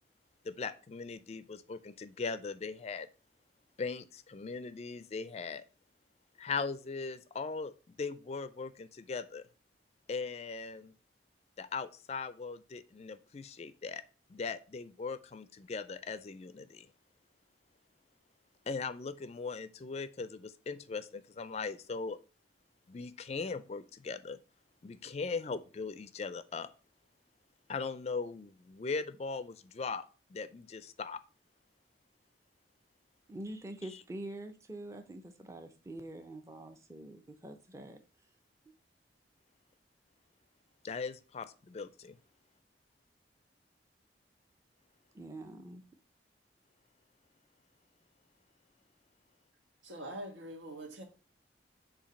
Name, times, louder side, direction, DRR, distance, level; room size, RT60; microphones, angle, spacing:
voice 1, 0.4-3.1 3.8-5.6 6.4-7.7 8.0-9.5 10.1-10.9 11.6-14.0 14.3-16.9 18.7-22.2 22.9-24.4 24.8-26.7 27.7-30.0 30.3-31.2 40.8-42.2, left 4 dB, 35° left, 0.4 m, -39 dB
voice 2, 33.3-38.0 45.1-45.8, right 1 dB, 15° right, 0.6 m, -45 dB
voice 3, 49.8-51.0, right 1 dB, 85° right, 1.4 m, -43 dB
7.1 x 2.7 x 5.1 m
head